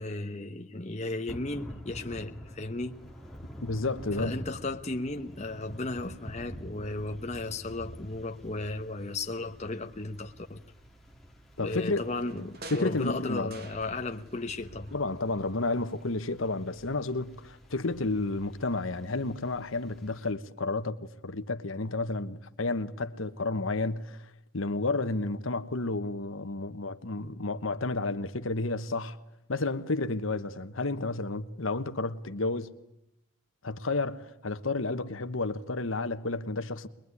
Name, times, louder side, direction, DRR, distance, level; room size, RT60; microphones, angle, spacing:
voice 1, 0.0-3.0 4.2-10.6 11.6-14.9, left 2 dB, 35° left, 1.1 m, -35 dB
Thunder / Rain, 1.3-20.3, equal, ahead, 2.1 m, -48 dB
voice 2, 3.6-4.4 11.6-12.0 12.7-13.6 14.9-24.2 24.5-29.2 29.5-32.7 33.6-36.9, left 3 dB, 75° left, 1.2 m, -31 dB
sound 1, 11.9-14.4 14.6-15.7 16.0-16.1, right 3 dB, 45° right, 1.6 m, -49 dB
22.5 x 21.5 x 9.8 m
head